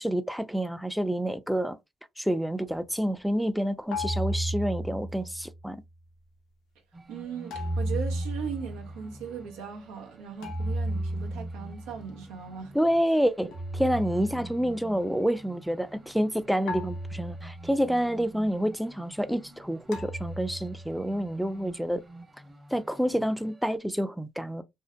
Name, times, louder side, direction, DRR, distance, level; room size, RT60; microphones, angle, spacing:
voice 1, 0.0-1.8 2.2-5.8 12.7-22.0 22.7-24.6, equal, ahead, 0.4 m, -28 dB
sound 1, 3.9-5.7 7.5-9.3 10.4-12.2 13.5-14.9 16.7-17.9 19.9-21.1, equal, 80° left, 0.6 m, -34 dB
sound 2, 6.9-23.8, right 2 dB, 25° right, 0.9 m, -49 dB
voice 2, 7.1-12.7, right 7 dB, 85° right, 0.6 m, -38 dB
2.6 x 2.4 x 2.2 m
hypercardioid pair, 50°, 0 cm